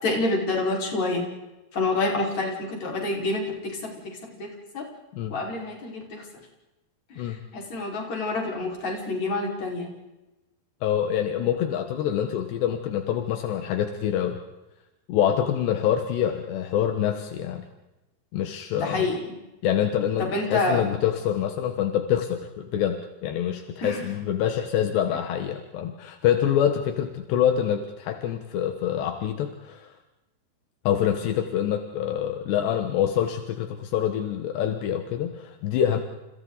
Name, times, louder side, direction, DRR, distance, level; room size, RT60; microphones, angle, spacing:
voice 1, 0.0-1.3 1.7-3.9 4.4-4.5 4.7-4.8 5.3-6.2 7.5-9.9 18.8-19.2 20.2-20.8 23.8-24.1, left 2 dB, 40° left, -1 dB, 6.1 m, -27 dB
voice 2, 10.8-14.4 15.1-17.7 18.3-19.1 19.6-29.9 30.9-36.0, left 10 dB, 80° left, 6 dB, 3.5 m, -26 dB
30.0 x 30.0 x 4.1 m, 1.0 s
omnidirectional pair, 4.9 m